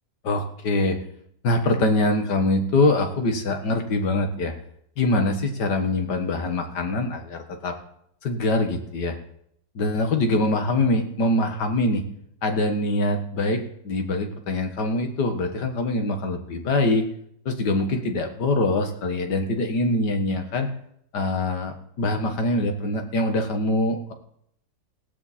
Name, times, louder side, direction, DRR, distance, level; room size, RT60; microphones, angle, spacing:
voice 1, 0.2-1.0 1.4-4.5 5.0-7.7 8.2-9.1 9.8-12.0 12.4-17.0 17.5-20.7 21.1-24.1, left 2 dB, 70° left, 5 dB, 2.2 m, -24 dB
17.5 x 12.0 x 4.3 m, 0.72 s
omnidirectional pair, 1.9 m